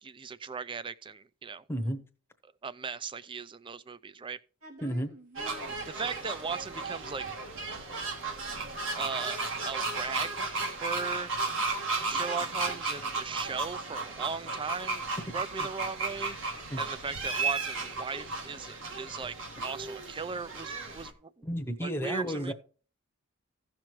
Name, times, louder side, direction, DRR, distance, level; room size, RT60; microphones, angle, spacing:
voice 1, 0.0-1.6 2.6-4.4 5.7-7.3 8.9-10.5 10.8-11.3 12.0-15.0 15.3-21.5 21.8-22.5, right 5 dB, 25° right, 0.4 m, -38 dB
voice 2, 1.7-2.0 4.8-5.1 15.6-15.7 16.7-16.8 21.4-22.5, equal, 10° left, 0.9 m, -32 dB
sound 1, 4.6-14.1 14.4-14.5 14.7-18.6, right 1 dB, 80° right, 2.5 m, -54 dB
sound 2, 5.4-21.1, right 3 dB, 60° right, 1.6 m, -34 dB
16.0 x 6.0 x 3.1 m
head